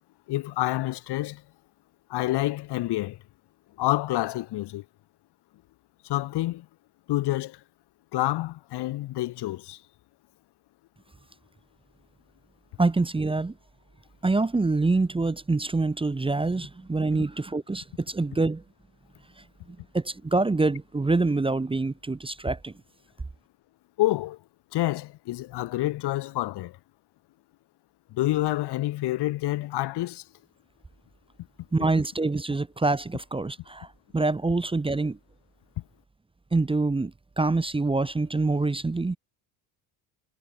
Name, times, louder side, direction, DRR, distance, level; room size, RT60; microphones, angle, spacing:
voice 1, 0.3-1.4 2.1-3.2 3.8-4.8 6.0-6.6 7.1-7.6 8.1-9.8 24.0-24.4 24.7-26.8 28.1-30.2, left 16 dB, 60° left, 1.4 m, -28 dB
voice 2, 12.8-13.5 14.2-18.6 19.4-22.7 31.7-35.2 36.5-39.2, right 3 dB, 10° right, 0.9 m, -26 dB
supercardioid pair, 80°, 45 cm